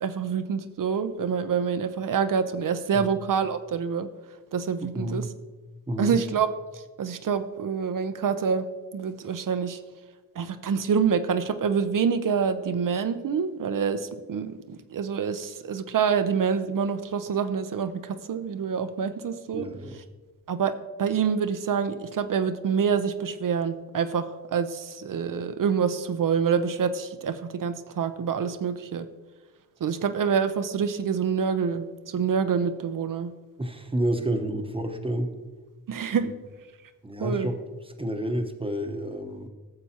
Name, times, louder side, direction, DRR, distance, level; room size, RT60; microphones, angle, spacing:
voice 1, 0.0-4.1 4.5-5.3 6.0-8.7 8.9-9.8 10.4-19.7 20.5-29.1 29.8-33.3 35.9-36.3 37.2-37.5, right 6 dB, 55° right, 10 dB, 0.6 m, -26 dB
voice 2, 19.5-20.0 33.6-35.3 37.0-37.6 38.0-39.5, right 1 dB, 15° right, 6 dB, 0.9 m, -29 dB
12.5 x 7.0 x 2.8 m, 1.3 s
cardioid pair, 60°, 38 cm